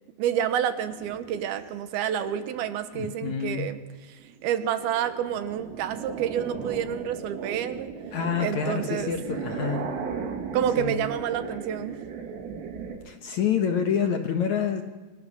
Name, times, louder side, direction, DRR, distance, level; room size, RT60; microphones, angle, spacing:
voice 1, 0.2-3.8 4.0-7.9 8.4-9.1 10.5-12.0, right 9 dB, 70° right, 9 dB, 3.0 m, -29 dB
sound 1, 0.8-2.8 3.4-3.8 4.2-13.0, right 6 dB, 90° right, 4.7 m, -36 dB
voice 2, 2.9-3.7 8.1-9.9 10.8-11.1 13.1-14.8, left 7 dB, 60° left, 5 dB, 2.1 m, -27 dB
27.5 x 25.5 x 6.3 m, 1.2 s
omnidirectional pair, 4.8 m